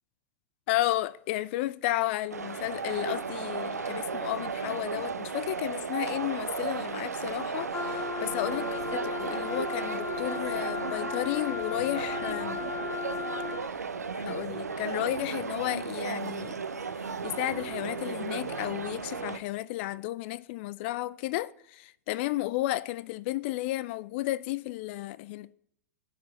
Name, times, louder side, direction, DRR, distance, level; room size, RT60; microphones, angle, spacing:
voice 1, 0.7-12.6 14.1-16.5 17.2-25.5, left 17 dB, 45° left, 0.4 m, -33 dB
sound 1, 2.3-19.4, right 5 dB, 80° right, 0.7 m, -35 dB
Wind instrument woodwind instrument, 7.7-13.7, left 6 dB, 25° left, 3.2 m, -36 dB
10.0 x 4.7 x 7.8 m
figure-of-eight pair, 95°, 9 cm